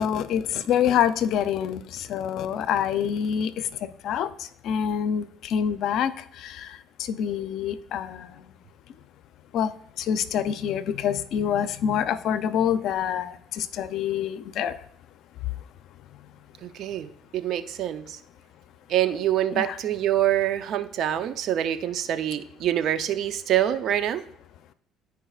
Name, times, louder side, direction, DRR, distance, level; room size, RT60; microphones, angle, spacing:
voice 1, 0.0-4.3 4.6-8.4 9.5-9.7 10.0-14.8 19.6-19.8, left 8 dB, 65° left, 13 dB, 0.6 m, -26 dB
voice 2, 16.6-18.2 18.9-24.2, right 11 dB, 65° right, 11 dB, 0.6 m, -25 dB
13.5 x 4.8 x 2.4 m, 0.72 s
supercardioid pair, 90°, 0 cm